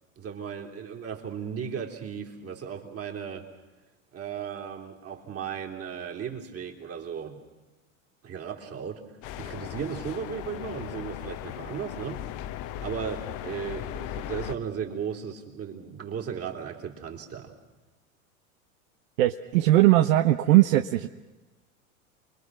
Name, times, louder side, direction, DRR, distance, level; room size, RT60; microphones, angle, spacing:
voice 1, 0.2-3.5 4.1-7.4 8.2-9.0 9.4-12.2 12.8-17.5, right 7 dB, 35° right, 1 dB, 3.4 m, -36 dB
sound 1, 9.2-14.6, left 12 dB, 45° left, 1.0 m, -37 dB
voice 2, 19.2-21.1, right 15 dB, 70° right, 9 dB, 0.9 m, -19 dB
28.5 x 21.5 x 6.3 m, 1.1 s
hypercardioid pair, 100°, 42 cm